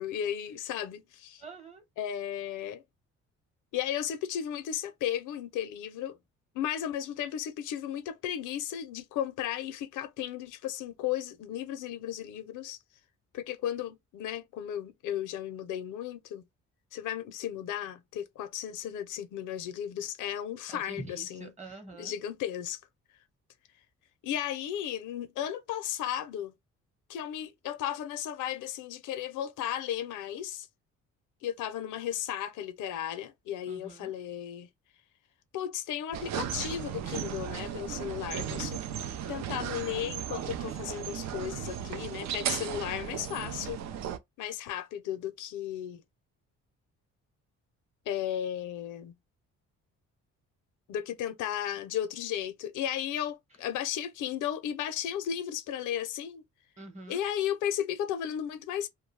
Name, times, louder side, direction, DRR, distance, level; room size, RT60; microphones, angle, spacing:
voice 1, 0.0-1.4 2.0-2.8 3.7-6.2 6.5-12.8 13.3-16.4 16.9-21.5 22.0-22.8 24.2-26.5 27.1-30.7 31.4-34.7 35.5-38.8 39.3-43.8 44.4-46.0 48.1-49.1 50.9-56.4 57.1-58.9, left 10 dB, 85° left, 0.6 m, -35 dB
voice 2, 1.4-1.8 20.7-22.2 33.7-34.2 56.8-57.2, right 3 dB, 25° right, 1.0 m, -45 dB
sound 1, 36.1-44.2, right 9 dB, 65° right, 0.5 m, -36 dB
2.3 x 2.1 x 3.1 m
cardioid pair, 90°, 30 cm